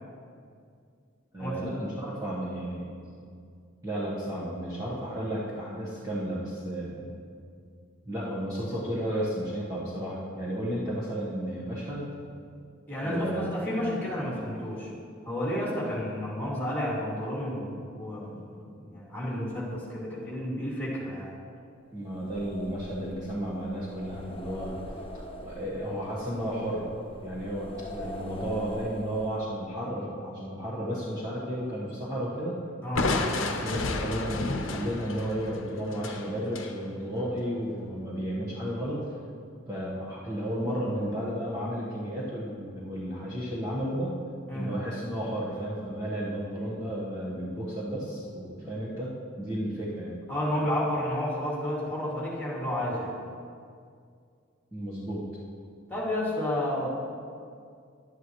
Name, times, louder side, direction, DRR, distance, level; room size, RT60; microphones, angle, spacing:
voice 1, 1.3-2.8 3.8-7.1 8.0-12.1 13.0-13.5 21.9-24.8 25.4-26.9 27.2-32.6 33.4-39.0 39.7-44.2 44.5-50.1 54.7-55.3, equal, 20° right, -8 dB, 1.3 m, -33 dB
voice 2, 12.9-14.9 15.2-21.3 32.8-33.1 44.5-44.7 50.3-53.1 55.9-56.9, left 1 dB, 10° left, -6 dB, 2.4 m, -31 dB
sound 1, 22.0-29.6, equal, 30° left, 0.8 m, -43 dB
Crushing, 33.0-36.7, left 3 dB, 70° left, 0.8 m, -31 dB
11.0 x 10.0 x 3.1 m, 2.3 s
head